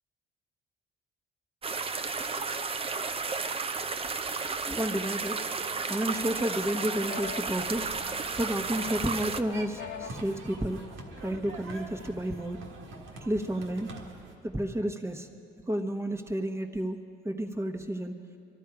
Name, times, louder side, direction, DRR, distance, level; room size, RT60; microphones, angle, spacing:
sound 1, 1.6-9.4, right 4 dB, 30° right, 0.6 m, -33 dB
voice 1, 4.6-5.4 5.9-7.9 8.4-10.9 11.2-12.6 13.2-13.9 14.4-15.3 15.7-18.2, right 1 dB, 15° right, 4 dB, 1.2 m, -31 dB
sound 2, 5.1-5.7 6.1-8.4 8.8-10.4, left 9 dB, 70° left, 0.7 m, -44 dB
sound 3, 7.6-14.3, right 2 dB, 85° right, 1.7 m, -45 dB
22.5 x 13.0 x 4.9 m, 2.6 s
cardioid pair, 90°, 20 cm